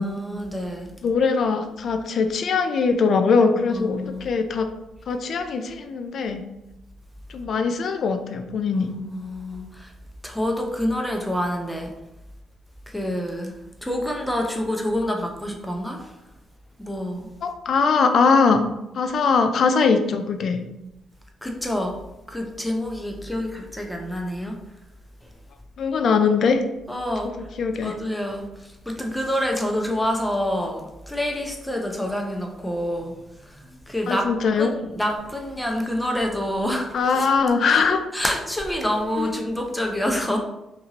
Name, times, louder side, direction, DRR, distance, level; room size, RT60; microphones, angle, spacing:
voice 1, 0.0-0.9 3.7-4.3 8.7-9.9 10.2-11.9 12.9-16.2 16.8-17.3 21.4-22.0 22.3-24.6 26.0-26.1 26.9-27.5 27.8-34.3 34.6-37.3 37.7-37.9 38.1-40.4, left 1 dB, 5° left, 2 dB, 0.5 m, -27 dB
voice 2, 1.0-4.7 5.1-6.4 7.3-8.9 17.4-18.6 19.0-20.6 25.8-26.6 27.6-27.9 34.1-34.7 36.9-38.0 39.2-39.3, left 5 dB, 60° left, 6 dB, 0.3 m, -21 dB
2.7 x 2.5 x 2.8 m, 0.92 s
cardioid pair, 90°, 0 cm